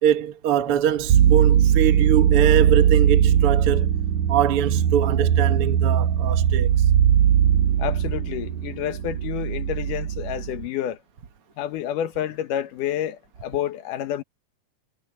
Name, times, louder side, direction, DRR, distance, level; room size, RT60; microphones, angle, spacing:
voice 1, 0.0-3.9 4.3-6.7, right 10 dB, 60° right, 1.7 m, -23 dB
sound 1, 1.1-10.7, right 9 dB, 75° right, 2.6 m, -19 dB
voice 2, 7.8-11.0 11.6-14.2, left 11 dB, 90° left, 2.7 m, -29 dB
omnidirectional pair, 3.6 m